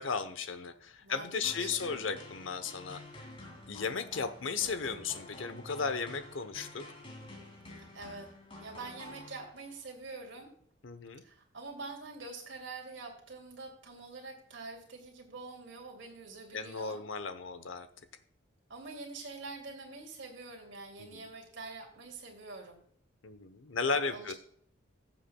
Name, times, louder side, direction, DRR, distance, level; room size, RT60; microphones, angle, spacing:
voice 1, 0.0-3.0 3.7-6.8 10.8-11.2 16.5-17.9 21.0-21.3 23.2-24.3, left 5 dB, 75° left, 11 dB, 0.8 m, -35 dB
voice 2, 1.0-2.0 7.7-8.3 8.6-10.5 11.2-17.0 18.7-22.8 23.9-24.3, right 3 dB, 65° right, 1 dB, 2.5 m, -45 dB
sound 1, 1.4-9.8, left 1 dB, 25° left, 2.4 m, -49 dB
16.0 x 7.3 x 2.3 m, 0.64 s
head